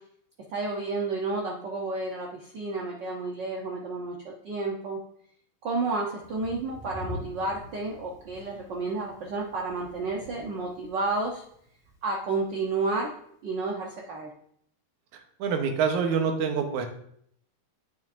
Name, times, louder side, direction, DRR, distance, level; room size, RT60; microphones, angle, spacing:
voice 1, 0.5-4.1 4.4-5.0 5.6-11.4 12.0-13.1 13.4-14.3, right 3 dB, 70° right, -2 dB, 1.1 m, -31 dB
Thunder, 6.2-13.0, left 2 dB, 5° right, 0.5 m, -46 dB
voice 2, 15.4-16.9, right 6 dB, 90° right, 4 dB, 2.4 m, -26 dB
9.6 x 6.9 x 2.6 m, 0.66 s
omnidirectional pair, 3.3 m